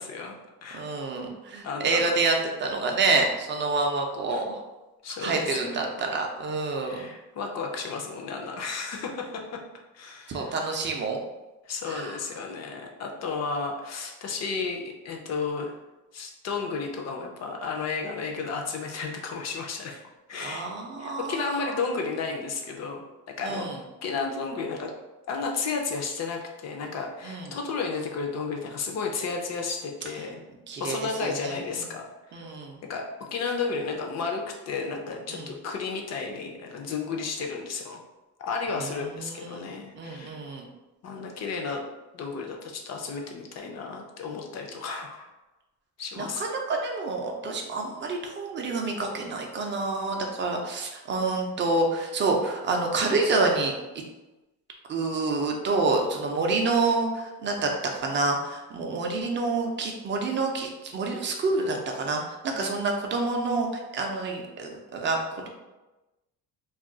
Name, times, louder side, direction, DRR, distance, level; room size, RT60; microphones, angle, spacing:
voice 1, 0.0-0.8 1.6-2.1 4.3-4.4 5.0-6.0 6.8-9.6 9.9-10.6 11.7-15.7 16.1-20.0 20.3-20.7 21.0-24.9 25.3-30.4 30.8-32.5 32.9-38.0 38.4-40.4 41.0-41.8 42.1-45.3 46.0-46.4 56.4-56.5 62.5-62.7, left 4 dB, 45° left, 1 dB, 0.5 m, -33 dB
voice 2, 0.7-4.6 5.2-7.1 10.3-11.2 11.9-12.2 20.4-21.9 23.4-23.8 27.2-27.5 30.7-31.8 32.3-32.8 35.3-35.5 38.7-39.7 40.0-40.7 46.2-54.0 54.9-63.7 63.9-65.5, right 3 dB, 30° right, 2 dB, 0.4 m, -28 dB
2.4 x 2.2 x 3.7 m, 1.1 s
cardioid pair, 150°, 39 cm